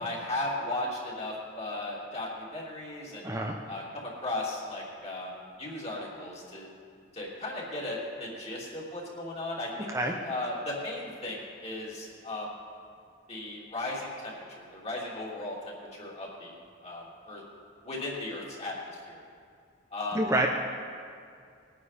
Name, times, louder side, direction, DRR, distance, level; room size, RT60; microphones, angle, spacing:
voice 1, 0.0-3.2 3.7-5.3 5.6-6.7 7.1-9.9 10.2-12.5 13.3-16.5 16.8-17.4 17.8-19.2 19.9-20.2, left 2 dB, 35° left, -5 dB, 3.1 m, -36 dB
voice 2, 3.2-3.5 9.9-10.1 20.1-20.5, right 1 dB, 15° right, 0 dB, 0.8 m, -27 dB
20.5 x 9.5 x 4.3 m, 2.3 s
head